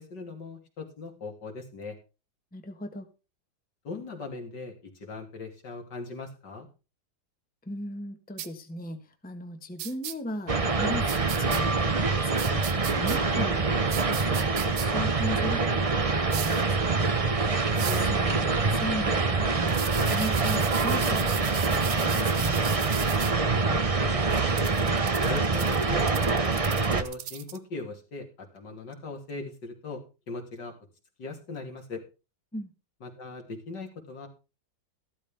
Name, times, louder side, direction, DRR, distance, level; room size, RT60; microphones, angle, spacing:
voice 1, 0.0-2.0 3.8-6.7 17.9-18.2 23.5-24.6 25.2-30.7 31.2-32.0 33.0-34.3, left 3 dB, 65° left, 3 dB, 3.3 m, -39 dB
voice 2, 2.5-3.1 7.6-11.1 11.4-22.7 32.5-32.7, equal, 5° left, 6 dB, 1.3 m, -37 dB
sound 1, 8.4-8.5 9.8-10.1 11.1-11.6 12.4-13.2 13.9-14.9 16.3-16.6 17.7-18.1 19.7-23.3 24.3-27.6, right 10 dB, 65° right, 1.5 m, -37 dB
sound 2, 10.5-27.0, right 4 dB, 30° right, 0.7 m, -25 dB
14.5 x 12.5 x 3.5 m, 0.32 s
omnidirectional pair, 2.0 m